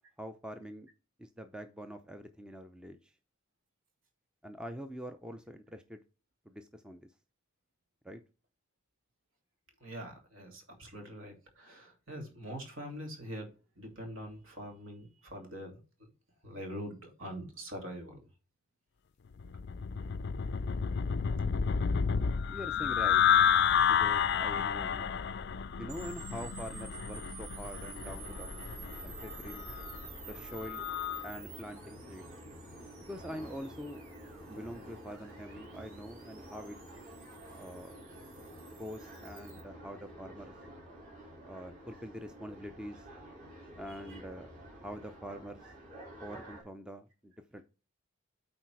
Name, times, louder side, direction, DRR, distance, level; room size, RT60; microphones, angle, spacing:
voice 1, 0.2-0.9 1.2-3.1 4.4-6.0 6.5-7.1 8.0-8.2 22.5-23.2 23.8-25.1 25.8-28.5 29.0-29.6 30.2-30.8 31.2-32.3 33.1-34.0 34.5-36.8 37.6-38.0 38.7-40.5 41.5-43.1 43.8-44.5 44.8-45.7 46.2-47.6, equal, 5° right, 7 dB, 0.5 m, -44 dB
voice 2, 9.8-16.1 16.4-18.2 44.1-44.2, equal, 65° right, 2 dB, 2.9 m, -44 dB
sound 1, 19.4-31.3, left 7 dB, 50° left, 0.4 m, -30 dB
sound 2, 25.9-39.6, right 5 dB, 80° right, 2.4 m, -51 dB
sound 3, 28.0-46.6, equal, 35° right, 2.9 m, -50 dB
8.7 x 4.2 x 4.6 m, 0.32 s
head